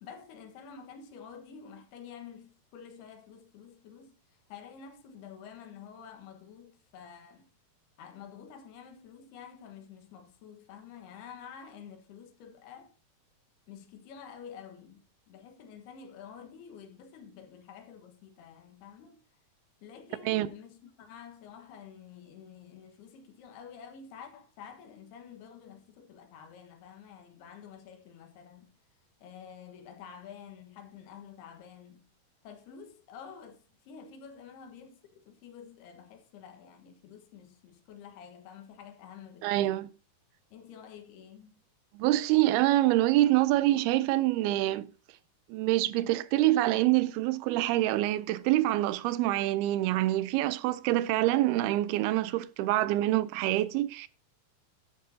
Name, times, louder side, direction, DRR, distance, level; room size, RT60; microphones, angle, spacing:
voice 1, 0.0-7.5 8.0-12.9 13.7-19.2 19.8-28.7 29.2-32.0 32.4-39.8 40.5-41.6, left 7 dB, 85° left, 3.5 m, -49 dB
voice 2, 39.4-39.9 41.9-44.9 45.5-54.1, right 16 dB, 85° right, 2.6 m, -26 dB
12.0 x 11.0 x 2.8 m
omnidirectional pair, 4.5 m